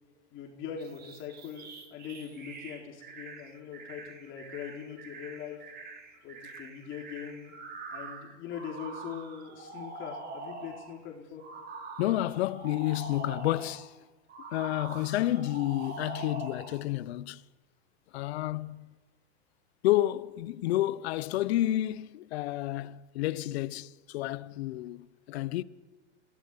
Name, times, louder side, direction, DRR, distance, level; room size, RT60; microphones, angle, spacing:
voice 1, 0.3-5.6 6.2-7.5 7.9-11.4, left 8 dB, 35° left, 4.1 m, -42 dB
sound 1, 0.8-11.0 11.4-13.9 14.3-16.8, right 3 dB, 25° right, 3.9 m, -44 dB
voice 2, 12.0-13.9 14.5-17.4 18.1-18.9 19.8-25.6, left 15 dB, 60° left, 1.2 m, -30 dB
27.5 x 18.0 x 9.6 m
supercardioid pair, 140°, 35 cm